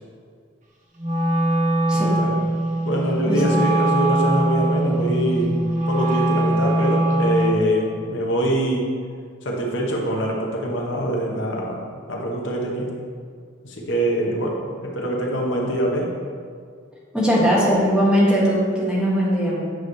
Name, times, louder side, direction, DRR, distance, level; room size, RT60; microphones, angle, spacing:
Wind instrument woodwind instrument, 1.0-7.7, right 1 dB, 40° right, 1.0 m, -21 dB
voice 1, 1.9-2.4 2.8-5.6 5.9-8.9 9.4-11.8 12.1-12.9 13.6-16.1, right 1 dB, 70° left, -1 dB, 1.1 m, -24 dB
voice 2, 3.3-3.6 17.1-19.6, equal, 5° right, -8 dB, 1.7 m, -19 dB
9.2 x 5.8 x 3.2 m, 2.1 s
head